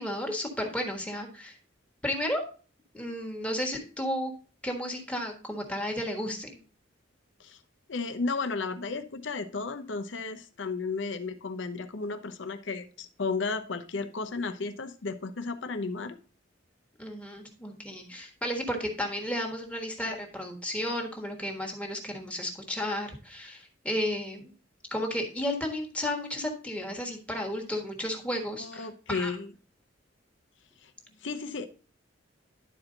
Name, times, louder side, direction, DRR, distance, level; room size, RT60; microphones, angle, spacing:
voice 1, 0.0-1.6 2.0-2.4 2.9-4.3 4.6-6.6 17.0-24.5 24.9-29.3, left 1 dB, 5° left, 1.4 m, -33 dB
voice 2, 7.9-16.2 28.6-29.5 30.8-30.9 31.2-31.7, left 4 dB, 70° left, 0.7 m, -33 dB
11.0 x 4.5 x 3.8 m
head